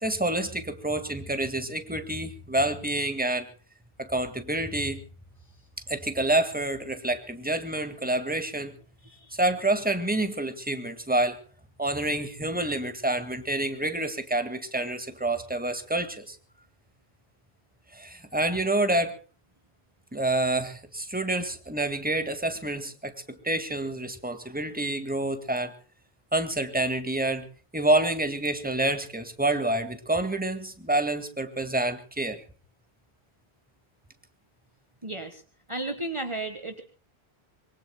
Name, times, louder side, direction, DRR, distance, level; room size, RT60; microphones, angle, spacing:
voice 1, 0.0-3.5 4.0-5.0 5.9-8.8 9.3-11.4 11.8-16.4 17.9-19.2 20.1-25.7 26.3-27.5 27.7-32.4, right 2 dB, 10° right, 9 dB, 1.8 m, -28 dB
voice 2, 35.0-35.4 35.7-36.8, right 2 dB, 30° right, 6 dB, 1.4 m, -34 dB
25.0 x 22.5 x 2.2 m, 0.39 s
omnidirectional pair, 1.1 m